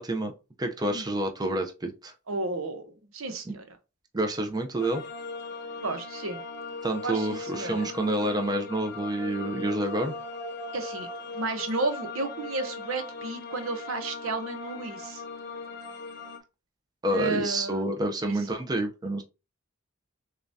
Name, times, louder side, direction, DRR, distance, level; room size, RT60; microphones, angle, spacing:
voice 1, 0.0-2.1 3.5-3.6 4.1-5.0 6.8-10.1 17.0-19.2, right 1 dB, 20° right, 0.6 m, -28 dB
voice 2, 2.3-3.6 5.7-6.4 7.0-7.9 10.7-11.1 11.3-15.2 17.1-17.9 18.3-18.6, right 2 dB, 80° right, 0.9 m, -32 dB
sound 1, 4.8-16.4, left 3 dB, 50° left, 0.8 m, -39 dB
6.6 x 2.3 x 2.7 m
head